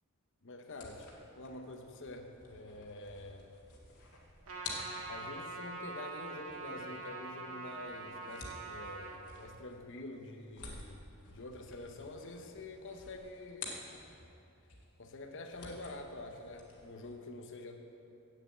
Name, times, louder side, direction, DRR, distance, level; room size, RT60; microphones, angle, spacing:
voice 1, 0.4-3.6 5.1-11.0 11.3-13.7 15.0-17.8, left 2 dB, 55° left, 4 dB, 0.8 m, -47 dB
sound 1, 0.7-14.4 14.7-17.2, left 3 dB, 85° left, 1.8 m, -51 dB
Trumpet, 4.5-9.2, right 3 dB, 70° right, 1.4 m, -44 dB
8.3 x 7.1 x 8.1 m, 2.7 s
head